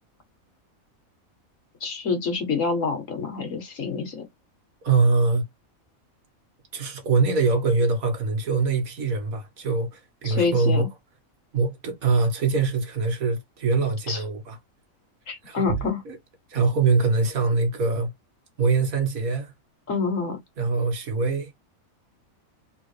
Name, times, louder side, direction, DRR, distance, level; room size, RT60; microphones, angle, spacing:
voice 1, 1.8-4.3 10.2-10.9 14.1-14.2 15.3-16.0 19.9-20.4, left 4 dB, 65° left, 1.9 m, -27 dB
voice 2, 4.8-5.4 6.7-10.9 11.5-14.6 15.4-15.8 16.1-16.2 16.5-18.1 18.6-19.5 20.6-21.5, right 4 dB, 85° right, 1.8 m, -23 dB
3.8 x 3.5 x 3.2 m
omnidirectional pair, 1.4 m